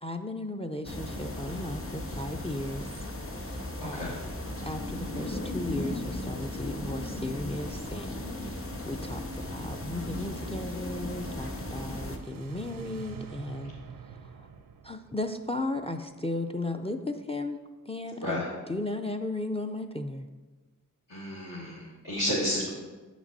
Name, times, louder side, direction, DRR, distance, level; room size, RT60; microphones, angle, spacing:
voice 1, 0.0-3.1 3.4-3.5 3.8-4.1 4.6-13.7 14.4-14.5 14.8-17.6 17.9-18.4 18.7-20.3, left 2 dB, 20° left, 7 dB, 0.4 m, -35 dB
sound 1, 0.8-12.2, left 1 dB, 40° left, 0.9 m, -36 dB
voice 2, 3.8-4.2 18.2-18.5 21.1-22.7, left 1 dB, 70° left, -9 dB, 1.9 m, -31 dB
sound 2, 11.4-16.5, right 6 dB, 85° right, 0.5 m, -46 dB
8.0 x 6.2 x 4.0 m, 1.3 s
wide cardioid pair, 40°, 34 cm